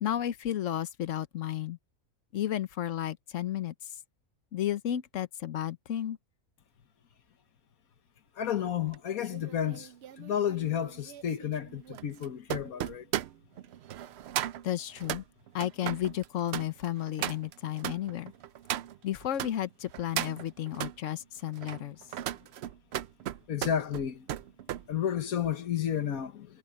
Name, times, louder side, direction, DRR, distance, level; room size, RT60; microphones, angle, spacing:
voice 1, 0.0-1.8 2.3-3.7 4.5-6.2 14.6-15.2 15.5-18.3 19.0-22.0, left 11 dB, 65° left, 1.2 m, -33 dB
voice 2, 8.4-9.9 10.2-13.0 23.5-24.2 24.9-26.5, left 9 dB, 90° left, 1.6 m, -31 dB
sound 1, 8.9-19.5 19.9-21.0 21.5-24.9 25.2-25.5, right 12 dB, 65° right, 0.7 m, -37 dB
omnidirectional pair, 1.5 m